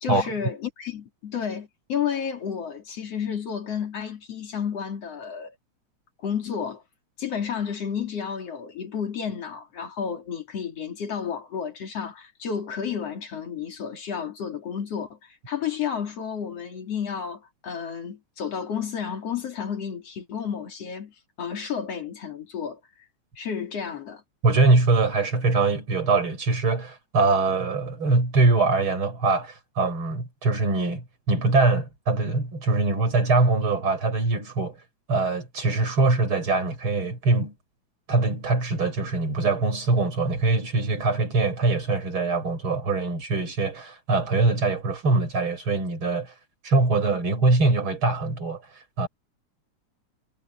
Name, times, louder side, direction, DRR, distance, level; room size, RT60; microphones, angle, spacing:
voice 1, 0.0-5.5 6.2-6.8 7.2-22.8 23.4-24.2, left 7 dB, 55° left, 3.9 m, -31 dB
voice 2, 24.4-34.8 35.1-37.5 38.1-46.3 46.6-49.1, right 3 dB, 45° right, 6.3 m, -23 dB
omnidirectional pair, 3.3 m